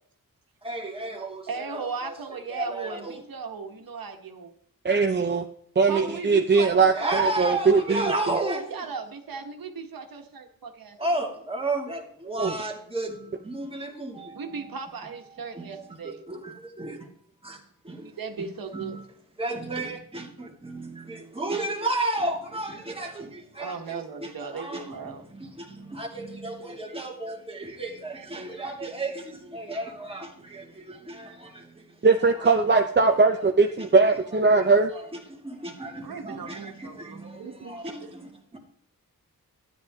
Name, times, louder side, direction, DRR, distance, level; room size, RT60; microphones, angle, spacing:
voice 1, 0.6-2.1 2.5-3.2 5.9-6.2 6.9-8.8 11.0-14.7 15.5-15.7 16.3-17.0 17.4-18.5 18.7-19.0 19.4-31.9 32.4-32.5 34.9-38.6, right 2 dB, 15° right, 2.3 m, -33 dB
voice 2, 1.5-4.5 5.9-8.2 8.7-11.0 14.3-16.2 18.0-19.0 23.6-25.2 36.0-38.1, right 5 dB, 85° right, 1.5 m, -37 dB
voice 3, 4.8-5.4 5.8-8.4 12.4-12.6 32.0-34.9, right 4 dB, 30° right, 0.7 m, -20 dB
12.5 x 9.5 x 3.6 m
wide cardioid pair, 130°, 34 cm